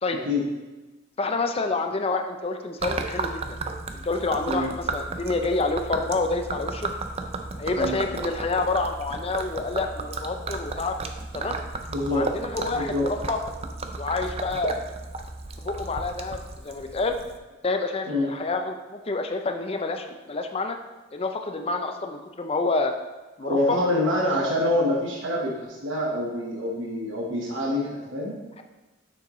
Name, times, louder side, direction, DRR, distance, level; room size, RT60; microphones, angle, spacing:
voice 1, 1.2-3.6 3.9-6.9 7.6-10.9 11.3-11.6 12.1-13.4 14.0-14.8 15.6-17.2 17.6-20.8 21.1-22.9 23.4-23.8 28.6-28.7, left 3 dB, 30° left, 6 dB, 0.5 m, -28 dB
Gurgling / Liquid, 2.8-17.4, right 3 dB, 30° right, 0.4 m, -34 dB
voice 2, 11.9-12.3 12.7-13.1 18.1-18.3 23.4-28.4, left 1 dB, 75° right, -3 dB, 1.2 m, -26 dB
6.8 x 6.5 x 3.1 m, 1.2 s
head